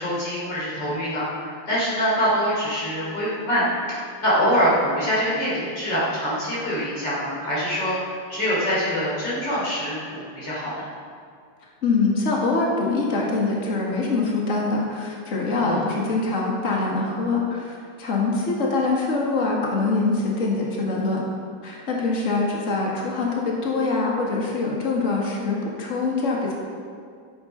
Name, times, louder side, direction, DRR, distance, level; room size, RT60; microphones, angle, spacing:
voice 1, 0.0-10.9 15.6-15.8, equal, 55° left, -8 dB, 4.1 m, -24 dB
voice 2, 11.8-21.2 21.6-26.5, left 3 dB, 35° left, -3 dB, 2.2 m, -24 dB
13.5 x 8.6 x 5.5 m, 2.2 s
omnidirectional pair, 2.3 m